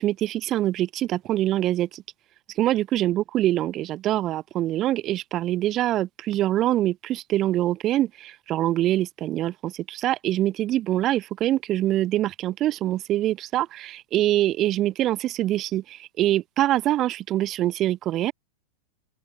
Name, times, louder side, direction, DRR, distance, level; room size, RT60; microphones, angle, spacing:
voice 1, 0.0-2.0 2.6-18.3, right 14 dB, 35° right, 2.4 m, -24 dB
open air
figure-of-eight pair, 90°, 0 cm